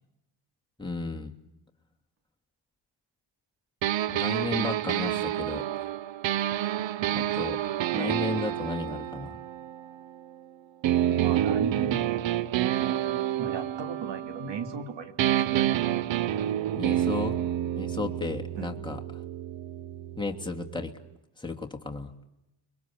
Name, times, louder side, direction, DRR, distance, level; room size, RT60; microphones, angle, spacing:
voice 1, 0.8-1.3 4.1-5.9 7.1-7.6 7.9-9.4 16.7-19.0 20.2-20.9 21.4-22.1, left 3 dB, 10° left, 2 dB, 2.9 m, -34 dB
sound 1, 3.8-10.4 10.8-14.9 15.2-20.9, right 12 dB, 85° right, 0.9 m, -29 dB
voice 2, 11.2-12.0 13.4-15.8 18.6-18.7, right 6 dB, 70° right, 8 dB, 3.0 m, -35 dB
29.5 x 22.5 x 8.7 m, 0.91 s
cardioid pair, 65°, 44 cm